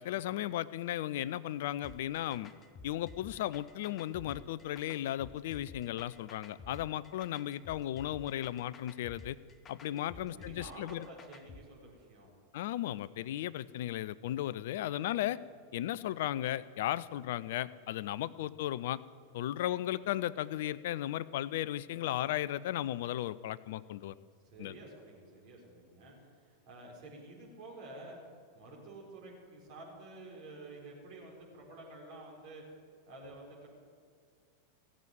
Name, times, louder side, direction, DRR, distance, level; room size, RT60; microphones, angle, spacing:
voice 1, 0.0-2.5 2.8-9.4 9.7-11.1 12.5-15.4 15.7-19.0 19.3-24.1 24.6-24.7, left 13 dB, 55° left, 19 dB, 0.4 m, -35 dB
sound 1, 1.8-11.6, left 3 dB, 25° left, 0.9 m, -52 dB
voice 2, 9.8-12.3 15.4-15.5 15.9-16.1 19.3-19.5 24.5-28.2 28.5-32.6 33.0-33.7, right 2 dB, 50° right, -1 dB, 4.4 m, -50 dB
17.0 x 7.4 x 9.2 m, 2.1 s
figure-of-eight pair, 90°, 0 cm